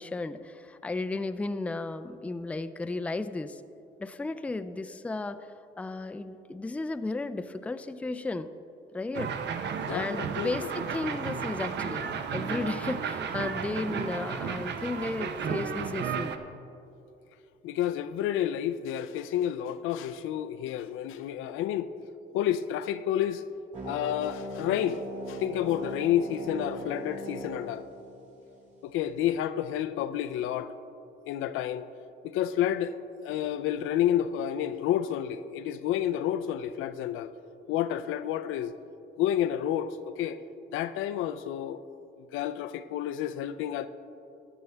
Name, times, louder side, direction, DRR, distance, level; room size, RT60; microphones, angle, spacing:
voice 1, 0.0-3.6 4.0-5.5 5.8-8.5 8.9-9.3 9.9-16.3, left 3 dB, 5° left, 0.3 m, -34 dB
sound 1, 9.1-16.4, right 6 dB, 60° right, 0.6 m, -33 dB
voice 2, 9.8-10.7 17.6-21.9 22.3-23.4 23.8-25.0 25.3-27.9 28.8-30.7 31.3-31.9 32.2-33.0 33.2-37.3 37.7-38.7 39.2-40.4 40.7-41.8 42.3-43.9, left 11 dB, 90° left, 0.4 m, -30 dB
sound 2, 23.7-28.7, right 1 dB, 35° right, 2.0 m, -40 dB
13.5 x 7.9 x 3.3 m
cardioid pair, 90°, 20 cm